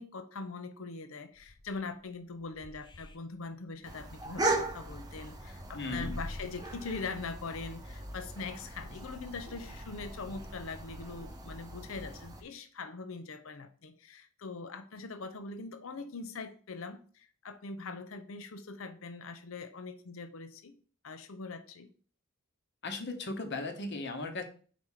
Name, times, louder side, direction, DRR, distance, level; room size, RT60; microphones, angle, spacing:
voice 1, 0.0-20.8 21.0-21.9, left 4 dB, 70° left, 9 dB, 0.7 m, -42 dB
sound 1, 1.4-2.0 2.4-3.2 3.5-3.6 3.9-7.1, left 1 dB, 20° left, 0.5 m, -46 dB
sound 2, 3.8-12.4, right 2 dB, 20° right, 0.8 m, -39 dB
voice 2, 5.7-6.2 22.8-24.4, left 2 dB, 55° left, 6 dB, 1.1 m, -37 dB
5.1 x 4.7 x 5.7 m, 0.43 s
head